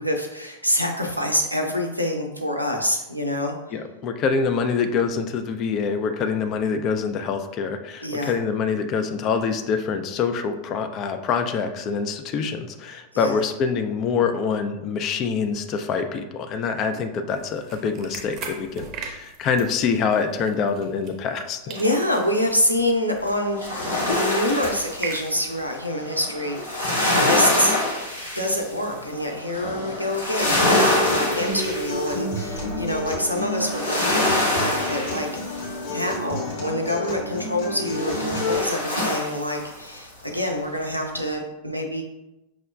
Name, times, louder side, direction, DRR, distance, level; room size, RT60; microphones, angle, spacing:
voice 1, 0.0-3.6 8.0-8.4 13.1-13.4 21.7-23.6 24.2-27.7 28.3-42.0, left 1 dB, 90° right, 3 dB, 0.5 m, -26 dB
voice 2, 3.7-21.7, left 5 dB, 35° left, 7 dB, 0.3 m, -25 dB
sound 1, 17.3-21.4 21.7-25.8, right 5 dB, 30° right, 0.6 m, -40 dB
sound 2, 21.7-22.4 23.5-36.3 37.9-40.0 40.4-40.5, left 1 dB, 85° left, 0.9 m, -26 dB
Acoustic guitar, 30.6-38.6, left 1 dB, 55° left, 1.0 m, -30 dB
5.8 x 2.1 x 2.3 m, 0.96 s
figure-of-eight pair, 90°, 0 cm